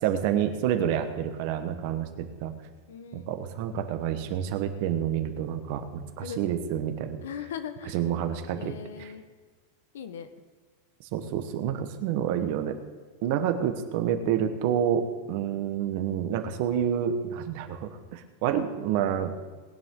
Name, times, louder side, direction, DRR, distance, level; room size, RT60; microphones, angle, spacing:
voice 1, 0.0-2.5 3.1-7.2 7.9-8.7 9.0-9.1 11.0-12.8 13.2-19.3, right 9 dB, 40° right, 8 dB, 1.2 m, -28 dB
voice 2, 2.9-3.3 6.2-6.5 7.2-8.0 8.5-9.2 9.9-10.3, left 8 dB, 85° left, 10 dB, 1.1 m, -39 dB
19.5 x 10.0 x 3.8 m, 1.4 s
supercardioid pair, 170°, 0 cm